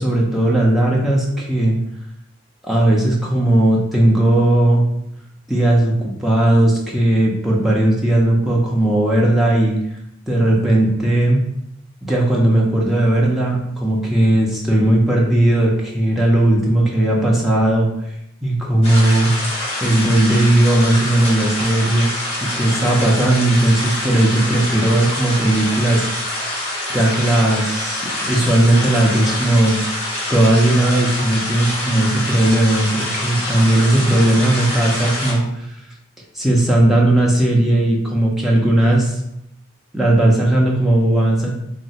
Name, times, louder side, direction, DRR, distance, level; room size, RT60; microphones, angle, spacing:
voice 1, 0.0-1.8 2.6-4.8 5.5-9.8 10.3-11.4 12.0-17.9 18.4-19.3 19.8-22.1 22.4-26.3 26.9-29.8 30.3-35.7 36.3-39.2 39.9-41.5, right 1 dB, ahead, -4 dB, 0.4 m, -16 dB
sound 1, 18.8-35.3, left 1 dB, 25° left, 0.8 m, -25 dB
2.5 x 2.0 x 3.9 m, 0.81 s
head